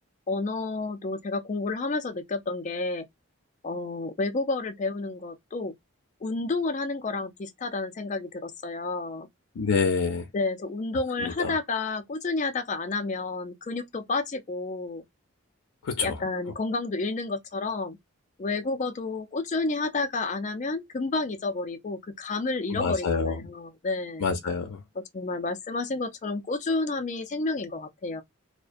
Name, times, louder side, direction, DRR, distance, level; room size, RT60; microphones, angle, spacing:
voice 1, 0.3-3.1 3.6-5.7 6.2-9.3 10.3-15.0 16.0-18.0 18.4-24.3 25.1-28.2, left 3 dB, 35° left, 0.4 m, -30 dB
voice 2, 9.6-10.2 11.2-11.5 15.8-16.1 22.7-23.4 24.2-24.8, left 5 dB, 90° left, 0.5 m, -26 dB
2.4 x 2.1 x 2.5 m
head